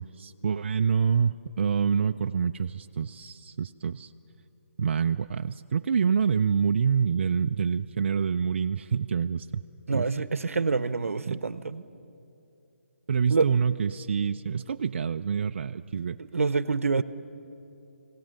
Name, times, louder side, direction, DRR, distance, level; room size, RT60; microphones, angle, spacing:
voice 1, 0.0-4.1 4.8-9.6 9.9-10.1 11.3-11.4 13.1-16.2 17.0-17.1, right 6 dB, 55° right, 7 dB, 0.4 m, -26 dB
voice 2, 9.9-11.8 13.3-13.5 16.3-17.0, right 4 dB, 80° right, 15 dB, 0.8 m, -26 dB
20.5 x 17.0 x 7.5 m, 2.7 s
hypercardioid pair, 160°, 7 cm